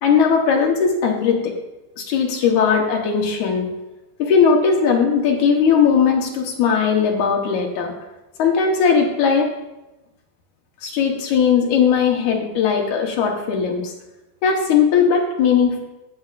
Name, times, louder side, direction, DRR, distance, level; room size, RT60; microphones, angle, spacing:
voice 1, 0.0-1.5 2.0-3.7 4.2-7.9 8.4-9.5 10.8-13.9 14.4-15.8, left 6 dB, 70° left, 1 dB, 2.4 m, -18 dB
15.5 x 7.3 x 2.5 m, 1.0 s
omnidirectional pair, 3.8 m